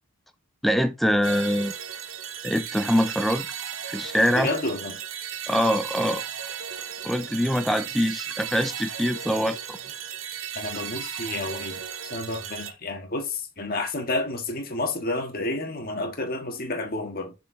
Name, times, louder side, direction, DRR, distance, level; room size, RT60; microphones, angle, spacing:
voice 1, 0.6-1.7 2.4-3.5 3.9-4.5 5.5-6.2 7.0-9.8, equal, ahead, 0.5 m, -24 dB
sound 1, 1.2-12.7, right 8 dB, 80° right, 0.9 m, -35 dB
voice 2, 4.3-5.0 10.5-17.3, left 2 dB, 45° left, 1.7 m, -30 dB
7.0 x 4.6 x 3.4 m
head